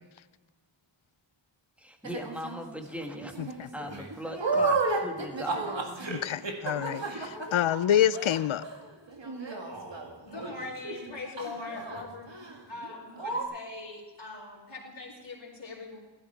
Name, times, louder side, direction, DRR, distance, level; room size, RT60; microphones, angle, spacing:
voice 1, 1.8-5.7, equal, 5° right, 3 dB, 1.8 m, -39 dB
sound 1, 2.0-2.6 3.1-11.1 11.4-12.0 12.3-12.6 12.8-12.9 13.2-13.4, right 3 dB, 65° right, 1.9 m, -33 dB
voice 2, 6.1-8.6, left 10 dB, 85° left, 17 dB, 0.5 m, -27 dB
voice 3, 10.2-16.0, left 3 dB, 65° left, -8 dB, 3.6 m, -41 dB
16.0 x 12.5 x 4.5 m, 1.3 s
wide cardioid pair, 60°, 46 cm